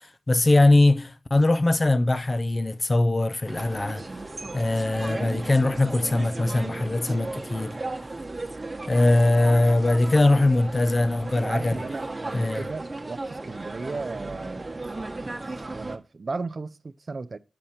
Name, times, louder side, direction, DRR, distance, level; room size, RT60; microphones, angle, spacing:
voice 1, 0.3-4.0 4.5-7.8 8.9-11.8 12.3-12.7, left 2 dB, 40° left, 0.5 m, -21 dB
sound 1, 3.5-16.0, right 2 dB, 35° right, 1.1 m, -35 dB
voice 2, 11.5-17.4, right 3 dB, 60° right, 0.5 m, -36 dB
7.8 x 4.2 x 4.2 m
cardioid pair, 45°, 0 cm